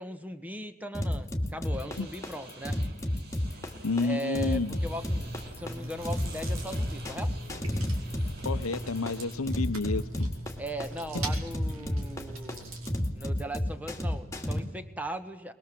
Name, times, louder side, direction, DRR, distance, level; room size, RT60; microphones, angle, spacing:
voice 1, 0.0-2.8 3.7-7.3 10.6-12.8 13.1-15.5, right 1 dB, 5° right, 9 dB, 1.4 m, -39 dB
sound 1, 0.9-14.6, left 1 dB, 15° left, 2.6 m, -31 dB
sound 2, 1.6-9.3, right 2 dB, 50° right, 3.6 m, -50 dB
voice 2, 3.8-4.8 8.4-10.3, left 3 dB, 90° left, 14 dB, 0.9 m, -30 dB
Chewing mastication, 4.9-13.0, right 1 dB, 75° right, 5.0 m, -42 dB
22.5 x 22.0 x 7.7 m, 1.1 s
head